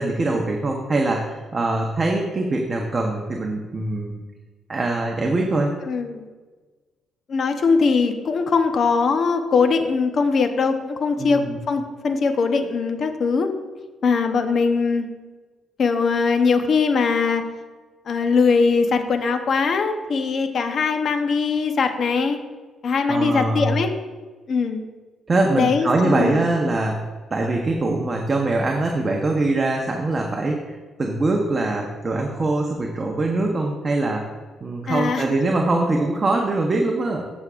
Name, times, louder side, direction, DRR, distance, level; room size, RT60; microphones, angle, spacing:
voice 1, 0.0-4.2 4.7-5.7 11.2-11.6 23.1-23.7 25.3-27.0 27.3-34.3 34.6-37.2, right 2 dB, 30° right, 1 dB, 0.9 m, -23 dB
voice 2, 5.8-6.3 7.3-13.5 14.0-15.1 15.8-17.4 18.1-22.4 22.8-23.9 24.5-24.8 25.5-26.4 34.9-35.3, left 5 dB, 55° left, 7 dB, 0.8 m, -21 dB
13.5 x 6.1 x 2.5 m, 1.3 s
cardioid pair, 90°, 0 cm